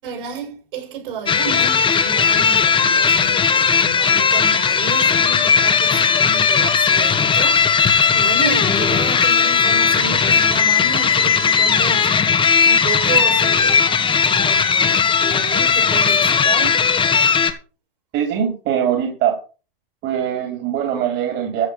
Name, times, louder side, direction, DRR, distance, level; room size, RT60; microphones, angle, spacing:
voice 1, 0.0-12.1 12.6-14.0 14.2-16.9, right 5 dB, 65° right, 7.0 m, -31 dB
sound 1, 1.3-17.5, left 6 dB, 15° left, 1.7 m, -16 dB
voice 2, 18.1-19.3 20.0-21.7, right 9 dB, 40° right, 3.9 m, -21 dB
14.5 x 6.4 x 6.6 m
hypercardioid pair, 110°, 29 cm